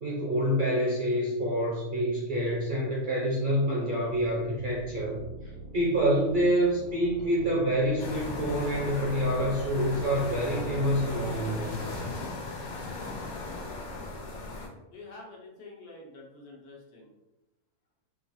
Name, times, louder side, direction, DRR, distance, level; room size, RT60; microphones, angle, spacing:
voice 1, 0.0-5.2 5.7-11.8, equal, 50° right, -4 dB, 0.6 m, -27 dB
sound 1, 4.1-14.8, right 2 dB, 85° right, 1.6 m, -45 dB
sound 2, 8.0-14.7, left 2 dB, 60° left, 0.9 m, -37 dB
voice 2, 14.9-17.1, left 2 dB, 85° left, -1 dB, 1.3 m, -47 dB
3.8 x 2.4 x 2.6 m, 0.96 s
omnidirectional pair, 1.6 m